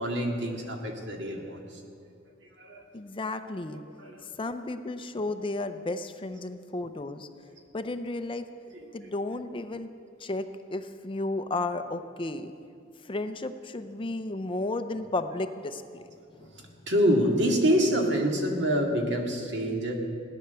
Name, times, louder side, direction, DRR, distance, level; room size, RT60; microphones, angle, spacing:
voice 1, 0.0-1.8 2.6-2.8 4.0-4.3 16.9-20.0, equal, 65° right, 1 dB, 2.2 m, -26 dB
voice 2, 2.9-3.8 4.4-7.3 7.7-8.5 8.9-9.9 10.2-12.5 13.0-16.1 16.3-16.5, left 2 dB, 25° left, 9 dB, 0.6 m, -33 dB
17.5 x 10.5 x 6.9 m, 2.3 s
head